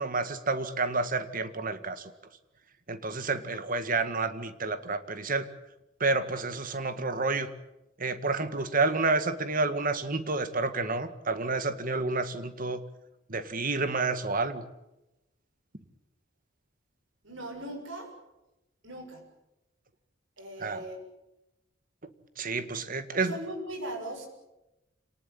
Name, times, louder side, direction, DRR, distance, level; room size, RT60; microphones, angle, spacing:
voice 1, 0.0-2.1 2.9-5.5 6.0-7.5 8.0-12.8 13.3-14.6 20.6-20.8 22.4-23.3, right 3 dB, 45° right, 10 dB, 1.9 m, -29 dB
voice 2, 17.2-18.1 18.8-19.2 20.4-21.0 23.1-24.3, right 1 dB, 85° right, 2 dB, 7.1 m, -39 dB
27.5 x 19.0 x 8.7 m, 0.93 s
head